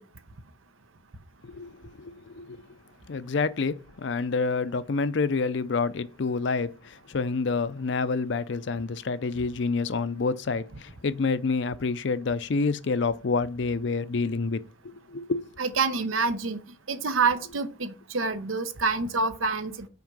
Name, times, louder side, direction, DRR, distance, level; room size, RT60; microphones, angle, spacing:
voice 1, 2.0-2.6 3.1-6.7 7.1-15.4, left 4 dB, 60° left, 0.5 m, -28 dB
voice 2, 15.6-16.6 16.9-19.9, right 4 dB, 80° right, 0.8 m, -27 dB
6.0 x 4.6 x 5.3 m
head